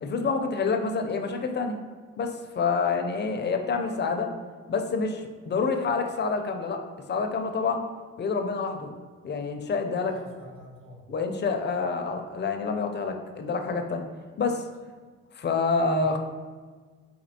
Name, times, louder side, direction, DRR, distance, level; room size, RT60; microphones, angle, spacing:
voice 1, 0.0-1.8 2.2-4.3 4.7-6.8 7.1-7.8 8.2-8.9 9.2-10.1 11.1-14.1 14.4-14.6 15.3-16.2, left 4 dB, 35° left, 5 dB, 0.4 m, -27 dB
voice 2, 10.1-11.0 16.0-16.2, right 1 dB, 45° right, -3 dB, 1.4 m, -46 dB
4.2 x 2.7 x 2.7 m, 1.5 s
cardioid pair, 90°, 30 cm